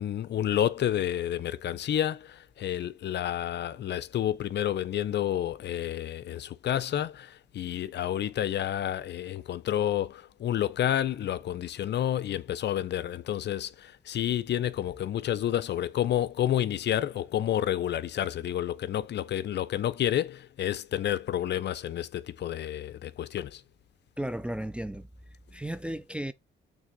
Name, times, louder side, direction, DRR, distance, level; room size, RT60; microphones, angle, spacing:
voice 1, 0.0-23.6, left 11 dB, 60° left, 0.6 m, -30 dB
voice 2, 24.2-25.1 25.5-26.3, right 1 dB, 5° right, 0.4 m, -34 dB
6.4 x 3.4 x 5.3 m
cardioid pair, 90°, 20 cm